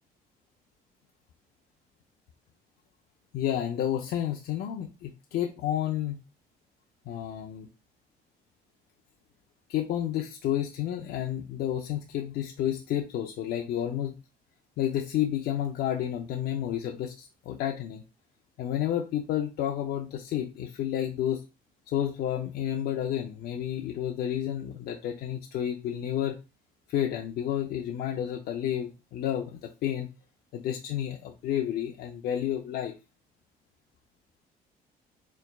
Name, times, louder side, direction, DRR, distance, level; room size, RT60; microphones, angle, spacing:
voice 1, 3.3-6.2 7.1-7.7 9.7-14.1 14.8-18.0 18.6-21.4 21.9-26.4 26.9-30.1 30.5-32.9, left 11 dB, 70° left, 2 dB, 0.6 m, -30 dB
4.5 x 3.5 x 2.3 m, 0.29 s
cardioid pair, 110°, 17 cm